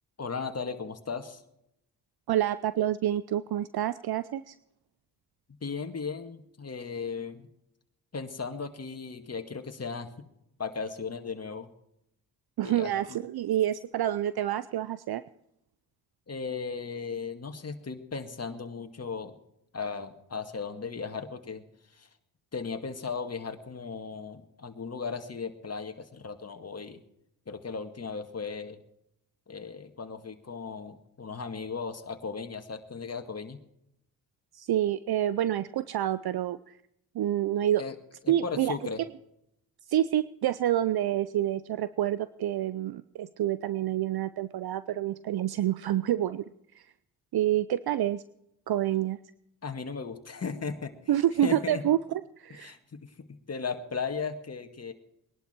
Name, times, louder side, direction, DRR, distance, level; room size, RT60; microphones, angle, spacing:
voice 1, 0.2-1.4 5.6-7.5 8.1-10.1 10.6-11.7 12.6-12.9 16.3-19.4 19.7-21.6 22.0-22.1 22.5-27.0 27.5-28.8 29.5-33.6 37.8-37.9 38.4-39.0 49.6-50.9 51.4-51.8 52.6-53.1 53.5-54.9, left 5 dB, 35° left, 7 dB, 2.1 m, -36 dB
voice 2, 2.3-4.5 12.6-15.2 34.5-36.8 37.1-37.8 38.3-39.1 39.9-46.9 47.3-48.2 48.7-49.2 51.1-52.7, right 12 dB, 60° right, 15 dB, 0.7 m, -28 dB
20.5 x 11.5 x 4.6 m, 0.79 s
supercardioid pair, 55°, 42 cm